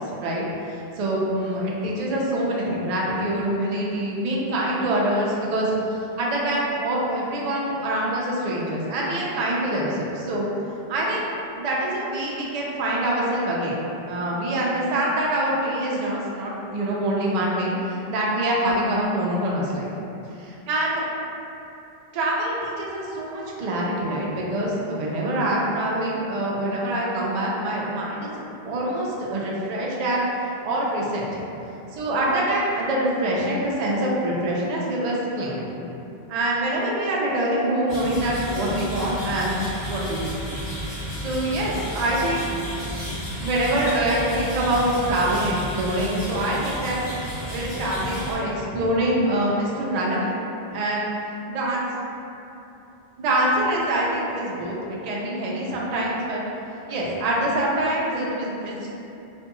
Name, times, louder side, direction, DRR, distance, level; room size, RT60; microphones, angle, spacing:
voice 1, 0.0-10.5 10.9-11.3 11.6-13.7 14.1-19.9 20.4-21.0 22.1-28.3 28.6-31.4 32.0-35.8 36.3-39.5 39.9-40.3 41.2-42.5 43.4-47.0 47.4-50.3 50.7-51.1 51.5-51.8 53.2-54.8 55.0-56.4 56.9-58.9, right 1 dB, 55° right, -4 dB, 0.4 m, -25 dB
sound 1, 37.9-48.3, equal, 30° left, 0.8 m, -32 dB
2.6 x 2.2 x 2.9 m, 2.8 s
omnidirectional pair, 1.1 m